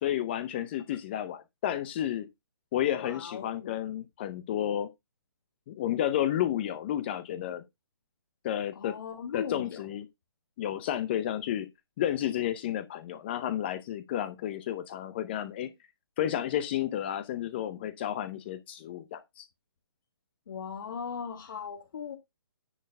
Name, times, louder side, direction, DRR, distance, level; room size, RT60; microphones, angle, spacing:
voice 1, 0.0-2.3 2.7-4.9 5.7-7.6 8.4-8.9 9.3-10.1 10.6-11.7 12.0-15.7 16.2-19.5, left 11 dB, 25° left, 0.7 m, -31 dB
voice 2, 3.0-3.7 8.8-9.8 20.5-22.2, left 6 dB, 50° left, 1.9 m, -38 dB
10.0 x 4.5 x 5.4 m
hypercardioid pair, 160°, 14 cm